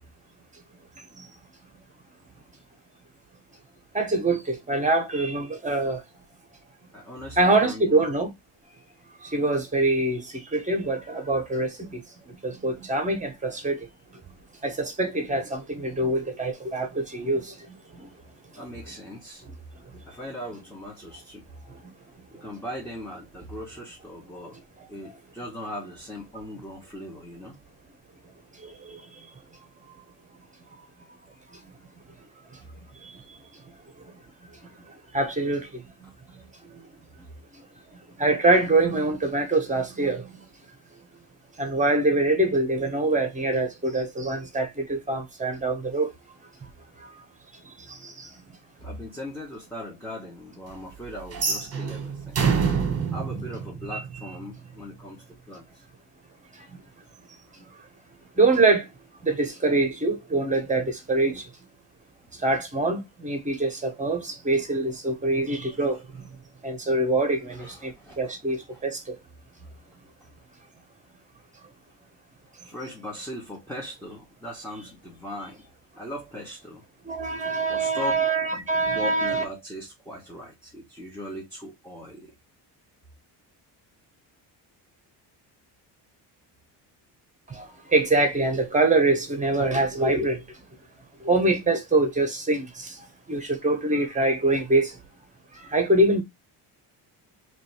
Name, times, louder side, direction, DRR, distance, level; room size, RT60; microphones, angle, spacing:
voice 1, 1.0-1.4 6.9-8.1 18.5-19.4 20.1-21.5 22.3-24.6 24.9-27.6 48.8-52.4 53.1-55.8 61.3-61.4 65.8-66.0 67.5-68.3 68.7-68.9 70.2-70.3 72.6-75.7 76.0-76.8 77.7-78.1 78.5-82.3, left 1 dB, 5° left, 1.0 m, -39 dB
voice 2, 3.9-6.0 7.4-8.3 9.3-12.0 12.4-13.8 14.6-17.5 28.6-29.0 33.0-33.1 35.1-35.7 38.2-40.3 41.6-46.1 47.9-48.3 58.4-58.9 59.2-61.4 62.4-66.0 66.6-67.9 68.2-69.1 77.1-79.4 87.5-87.6 87.9-90.4 91.2-92.9 93.3-94.9 95.7-96.2, right 2 dB, 15° right, 1.2 m, -24 dB
sound 1, 51.3-54.4, right 6 dB, 35° right, 1.3 m, -26 dB
3.2 x 2.9 x 4.4 m
cardioid pair, 125°, 42 cm